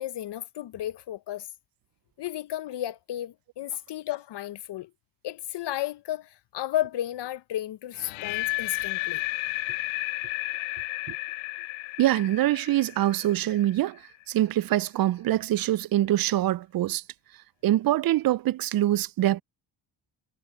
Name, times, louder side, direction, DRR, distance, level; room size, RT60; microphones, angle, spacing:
voice 1, 0.0-1.5 2.2-4.9 5.2-9.2, left 13 dB, 60° left, 0.9 m, -33 dB
sound 1, 8.0-14.0, left 22 dB, 90° left, 0.8 m, -32 dB
voice 2, 12.0-14.0 14.3-17.0 17.6-19.4, right 14 dB, 50° right, 0.5 m, -24 dB
supercardioid pair, 50°, 47 cm